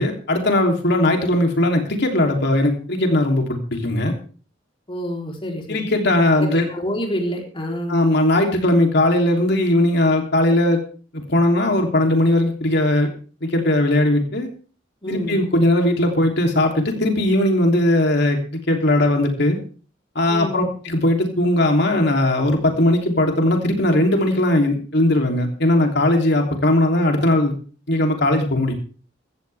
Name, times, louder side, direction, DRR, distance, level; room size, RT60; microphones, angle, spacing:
voice 1, 0.0-4.1 5.7-6.7 7.9-10.8 11.1-13.1 13.4-14.5 15.1-19.6 20.1-27.5 27.9-28.7, left 1 dB, 65° left, 3 dB, 3.2 m, -19 dB
voice 2, 4.9-5.9 6.4-8.3 15.0-15.5 20.3-20.7, equal, 30° left, 0 dB, 3.7 m, -28 dB
15.5 x 14.5 x 3.5 m, 0.39 s
head